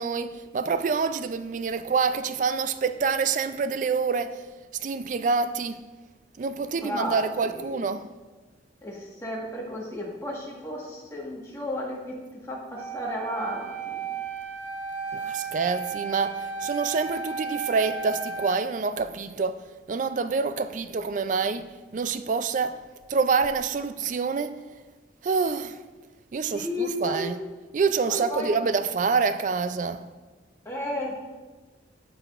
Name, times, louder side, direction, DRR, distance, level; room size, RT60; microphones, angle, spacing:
voice 1, 0.0-4.4 4.8-5.8 6.4-8.1 15.1-19.6 19.9-22.8 23.1-24.6 25.2-25.8 26.3-27.4 27.7-30.1, right 5 dB, 45° right, 0.3 m, -27 dB
voice 2, 6.8-7.2 7.5-7.8 8.8-14.0 26.5-27.3 28.1-28.5 30.6-31.1, left 1 dB, 15° left, 1.4 m, -33 dB
Wind instrument woodwind instrument, 12.7-18.7, right 5 dB, 85° right, 0.7 m, -34 dB
14.5 x 4.9 x 2.4 m
head